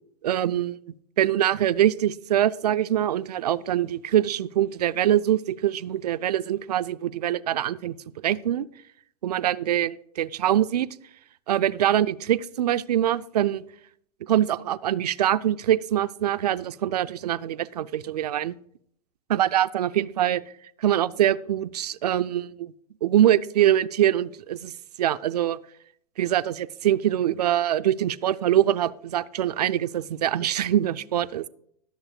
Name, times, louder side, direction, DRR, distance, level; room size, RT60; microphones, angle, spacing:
voice 1, 0.2-0.8 1.2-8.0 8.2-8.7 9.2-10.9 11.5-13.6 14.2-18.5 19.3-20.4 20.8-22.7 23.0-24.7 25.0-25.6 26.2-31.5, right 11 dB, 80° right, 14 dB, 0.4 m, -24 dB
11.5 x 6.7 x 4.8 m, 0.68 s
hypercardioid pair, 95°, 20 cm